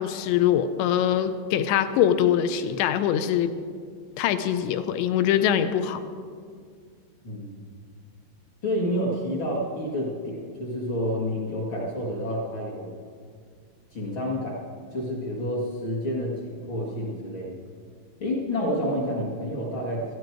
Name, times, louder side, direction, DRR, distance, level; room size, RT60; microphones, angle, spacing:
voice 1, 0.0-3.5 4.2-6.0, left 10 dB, 80° left, 11 dB, 2.7 m, -23 dB
voice 2, 7.2-7.6 8.6-12.9 13.9-14.6 14.9-17.6 18.2-20.0, equal, 60° left, -3 dB, 1.2 m, -29 dB
17.0 x 13.5 x 4.6 m, 2.1 s
omnidirectional pair, 5.4 m